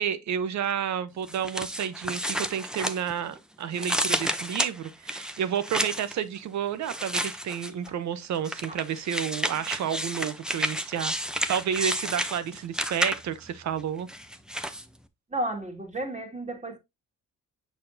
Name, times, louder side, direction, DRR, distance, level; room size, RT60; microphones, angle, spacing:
voice 1, 0.0-11.1 11.5-14.1, right 8 dB, 65° right, 0.9 m, -30 dB
sound 1, 1.3-3.4 3.7-6.1 6.8-7.9 8.4-13.5 14.1-14.8, equal, ahead, 0.7 m, -31 dB
voice 2, 15.3-16.8, right 1 dB, 25° right, 2.1 m, -32 dB
6.6 x 5.9 x 2.7 m
cardioid pair, 90°, 30 cm